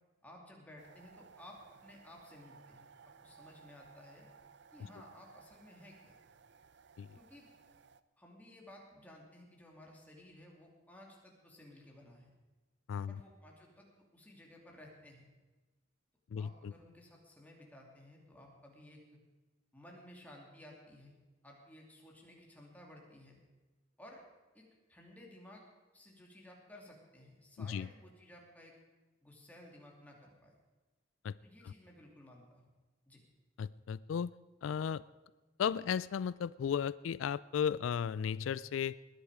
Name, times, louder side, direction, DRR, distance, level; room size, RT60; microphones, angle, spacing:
voice 1, 0.2-2.9 3.2-4.3 4.7-6.1 7.1-7.5 8.2-12.3 13.1-13.9 14.1-15.2 16.4-19.0 19.7-21.2 21.4-23.4 24.0-24.2 24.5-25.6 25.9-28.7 29.2-30.5 31.4-32.7 33.1-33.2, left 1 dB, 10° left, -1 dB, 2.8 m, -56 dB
sound 1, 0.8-8.0, right 5 dB, 60° right, 0.5 m, -60 dB
voice 2, 12.9-13.2 16.3-16.7 27.6-27.9 31.2-31.4 31.6-31.7 33.6-34.3 34.6-35.0 35.6-39.0, left 7 dB, 85° left, 19 dB, 0.3 m, -35 dB
20.0 x 10.5 x 4.9 m, 1.3 s
head